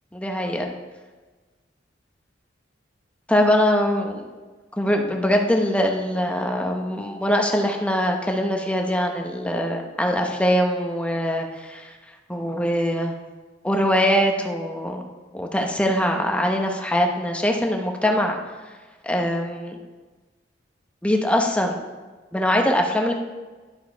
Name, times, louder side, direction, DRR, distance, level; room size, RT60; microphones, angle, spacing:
voice 1, 0.1-0.7 3.3-4.3 4.8-11.9 12.3-13.2 13.6-15.0 15.3-18.4 19.0-19.8 21.0-21.8 22.3-23.1, equal, 5° left, 2 dB, 0.8 m, -22 dB
11.5 x 4.6 x 4.5 m, 1.3 s
head